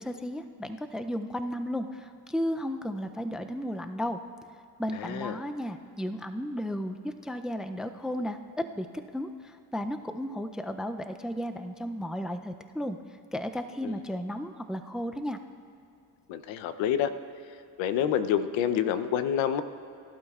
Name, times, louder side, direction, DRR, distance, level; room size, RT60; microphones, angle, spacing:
voice 1, 0.0-4.2 4.8-13.0 13.3-15.4, equal, ahead, 8 dB, 0.4 m, -34 dB
voice 2, 5.0-5.4 13.8-13.9 16.3-17.1 17.8-19.6, left 9 dB, 85° left, 11 dB, 0.8 m, -27 dB
21.0 x 12.0 x 2.4 m, 2.5 s
cardioid pair, 95°, 44 cm